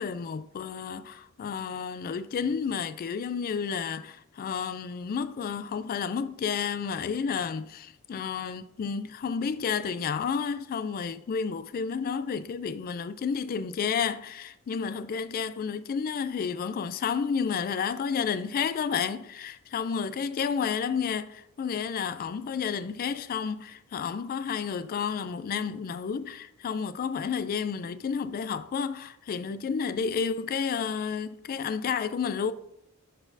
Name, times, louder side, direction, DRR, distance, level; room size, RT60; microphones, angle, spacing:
voice 1, 0.0-32.5, left 6 dB, 40° left, 0.3 m, -31 dB
10.5 x 4.2 x 2.6 m
head